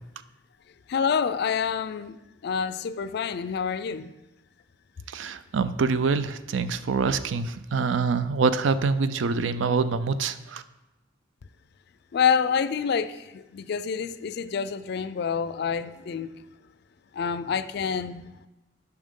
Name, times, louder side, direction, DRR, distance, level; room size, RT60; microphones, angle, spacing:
voice 1, 0.9-2.2 2.4-4.1 12.1-16.3 17.1-18.2, left 6 dB, 60° left, 15 dB, 0.3 m, -27 dB
voice 2, 5.1-10.6, right 4 dB, 80° right, 13 dB, 0.4 m, -25 dB
8.7 x 5.9 x 3.7 m, 1.0 s
head